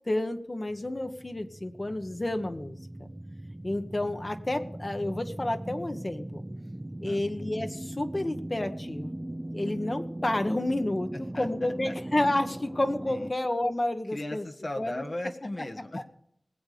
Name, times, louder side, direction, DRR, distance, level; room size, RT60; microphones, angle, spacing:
voice 1, 0.1-3.1 3.6-6.4 7.0-9.2 9.5-11.1 11.4-14.4 14.8-15.0, left 1 dB, 40° left, 7 dB, 1.3 m, -30 dB
sound 1, 0.7-13.3, right 1 dB, 25° right, 0.7 m, -39 dB
voice 2, 11.3-11.9 13.1-13.3 14.1-16.0, left 1 dB, 55° left, 4 dB, 1.5 m, -37 dB
20.0 x 8.2 x 5.1 m, 0.70 s
wide cardioid pair, 55°, 0 cm